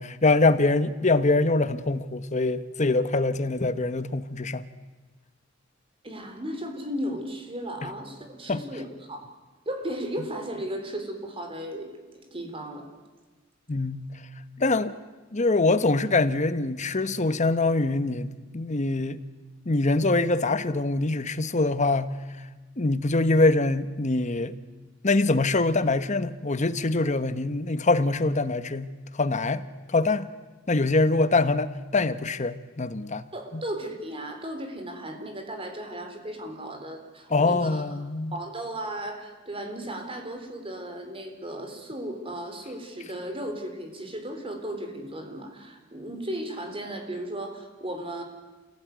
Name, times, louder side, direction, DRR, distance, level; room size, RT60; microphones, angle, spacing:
voice 1, 0.0-4.6 7.8-7.9 8.5-8.6 13.7-14.1 14.6-14.9 15.3-19.2 19.7-22.1 22.8-24.5 25.0-28.9 29.2-29.6 29.9-30.3 30.7-33.3 37.3-38.3, left 2 dB, 40° left, 12 dB, 1.1 m, -24 dB
voice 2, 6.0-9.3 9.7-12.9 33.3-37.8 38.3-48.2, right 1 dB, 30° right, 5 dB, 3.8 m, -35 dB
28.0 x 17.5 x 9.4 m, 1.3 s
head